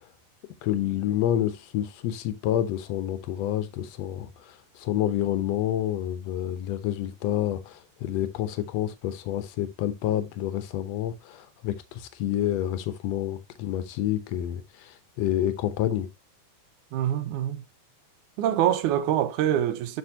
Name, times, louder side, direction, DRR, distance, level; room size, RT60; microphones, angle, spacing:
voice 1, 0.6-16.1, left 12 dB, 70° left, 1.7 m, -28 dB
voice 2, 16.9-17.6 18.4-20.0, right 11 dB, 75° right, 2.1 m, -25 dB
8.0 x 5.9 x 2.7 m
omnidirectional pair, 3.7 m